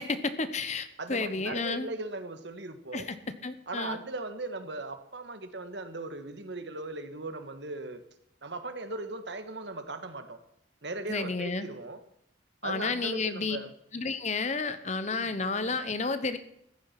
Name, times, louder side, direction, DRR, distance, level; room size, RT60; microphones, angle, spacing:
voice 1, 0.0-1.9 2.9-3.2 3.4-4.0 11.1-11.7 12.6-13.6 13.9-16.4, left 3 dB, 35° left, 12 dB, 1.0 m, -31 dB
voice 2, 1.0-3.1 3.7-8.0 8.4-10.4 10.8-12.0 12.6-13.7 15.1-15.3, right 2 dB, 65° right, 9 dB, 1.5 m, -38 dB
15.0 x 10.0 x 5.9 m, 0.79 s
head